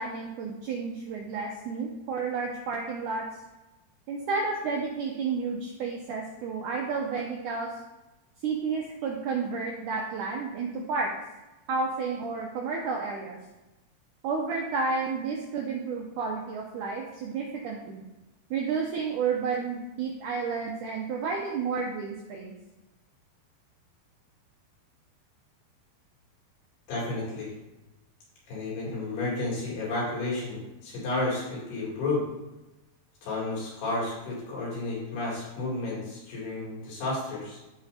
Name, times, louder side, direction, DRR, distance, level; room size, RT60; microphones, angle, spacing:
voice 1, 0.0-3.3 4.1-7.8 8.4-11.1 11.7-13.4 14.2-18.0 18.5-22.5, right 4 dB, 85° right, -1 dB, 1.8 m, -31 dB
voice 2, 26.9-27.5 28.5-32.3 33.2-37.6, left 2 dB, 85° left, -6 dB, 5.1 m, -32 dB
14.0 x 4.9 x 2.8 m, 1.0 s
omnidirectional pair, 4.5 m